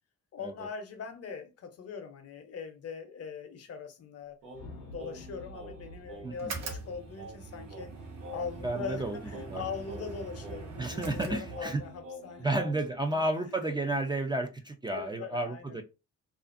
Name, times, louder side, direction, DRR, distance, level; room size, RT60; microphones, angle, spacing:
voice 1, 0.3-4.4 4.8-7.9 8.3-12.7 13.1-13.7 14.9-15.8, left 5 dB, 55° left, 0.6 m, -41 dB
Singing, 4.4-13.0, equal, 90° right, 1.1 m, -48 dB
sound 1, 4.5-8.9, left 2 dB, 90° left, 0.6 m, -50 dB
sound 2, 6.3-12.0, right 3 dB, 60° right, 0.9 m, -43 dB
voice 2, 8.6-9.6 10.8-11.8 12.4-15.8, right 2 dB, 15° right, 0.3 m, -32 dB
2.5 x 2.4 x 2.4 m
cardioid pair, 90°, 30 cm